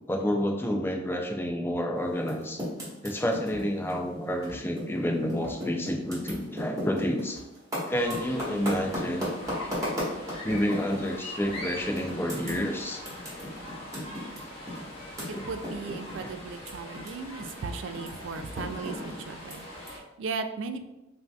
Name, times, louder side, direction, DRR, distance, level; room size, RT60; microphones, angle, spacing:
voice 1, 0.1-2.6 3.0-7.4 7.9-9.3 10.4-13.0 15.3-15.4 16.2-16.3, equal, 10° left, 2 dB, 0.4 m, -29 dB
Typing, 2.2-5.0 5.2-11.1 11.5-11.7 12.0-17.1 17.3-19.9, equal, 15° right, 1.4 m, -36 dB
sound 1, 3.5-3.9 4.5-4.7 5.4-5.6 6.3-6.5 7.3-7.5 8.4-8.5 9.4-9.6 10.5-10.9 11.5-11.6 12.5-12.7, left 1 dB, 80° left, 0.9 m, -45 dB
sound 2, 7.9-20.0, left 1 dB, 30° left, 1.0 m, -42 dB
voice 2, 15.3-20.9, right 4 dB, 75° right, 8 dB, 0.3 m, -37 dB
5.6 x 2.6 x 2.3 m, 0.98 s
head